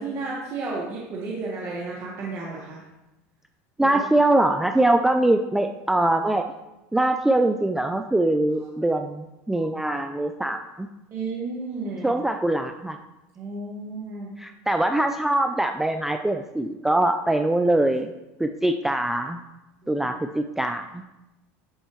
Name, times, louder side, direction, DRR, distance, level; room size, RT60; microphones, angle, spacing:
voice 1, 0.0-2.8 3.8-4.0 11.1-12.1 13.3-14.3 19.8-20.0, right 3 dB, 40° right, -4 dB, 1.4 m, -32 dB
voice 2, 3.8-6.4 6.9-10.9 12.0-13.0 14.4-18.1 18.4-19.4 19.9-21.0, right 1 dB, 5° right, 6 dB, 0.3 m, -23 dB
10.5 x 4.5 x 3.1 m, 0.99 s
supercardioid pair, 120°, 7 cm